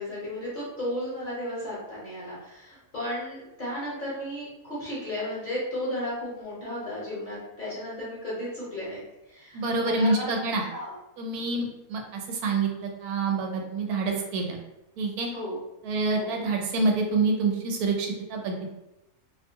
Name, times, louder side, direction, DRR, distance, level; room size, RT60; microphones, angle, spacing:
voice 1, 0.0-10.9 15.3-15.6 16.1-16.3, left 1 dB, 40° left, -8 dB, 0.9 m, -34 dB
voice 2, 9.5-10.6 11.2-14.6 15.0-15.3 15.8-18.7, right 3 dB, 80° right, 2 dB, 1.0 m, -27 dB
2.6 x 2.2 x 2.7 m, 0.93 s
omnidirectional pair, 1.6 m